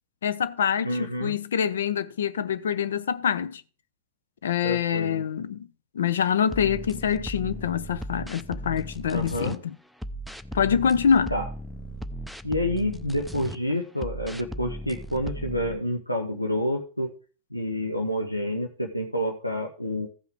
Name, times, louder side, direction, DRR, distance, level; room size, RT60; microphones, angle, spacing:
voice 1, 0.2-3.6 4.4-5.7 5.9-9.8 10.5-11.3, left 7 dB, 65° left, 0.6 m, -25 dB
voice 2, 0.8-1.3 4.6-5.2 9.1-9.6 11.3-11.5 12.4-17.1 17.5-20.1, left 1 dB, 90° left, 1.0 m, -28 dB
sound 1, 6.5-9.6 10.0-13.6 14.0-15.8, right 1 dB, ahead, 0.5 m, -37 dB
14.5 x 5.7 x 3.5 m
figure-of-eight pair, 90°, 0 cm